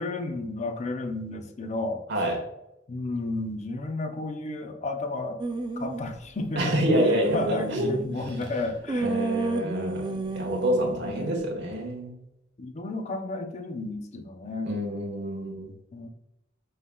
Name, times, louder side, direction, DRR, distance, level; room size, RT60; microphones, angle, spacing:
voice 1, 0.0-2.0 2.9-5.4 5.8-6.7 7.1-9.1 10.9-11.6 12.6-14.8 15.9-16.1, left 2 dB, 35° left, 5 dB, 0.5 m, -32 dB
voice 2, 2.1-2.4 6.5-8.4 9.0-12.1 14.6-15.7, right 1 dB, 60° right, 1 dB, 1.2 m, -27 dB
sound 1, 5.4-6.0 6.7-8.5 8.9-11.4, right 3 dB, 25° right, 0.4 m, -31 dB
5.4 x 3.6 x 2.2 m, 0.87 s
head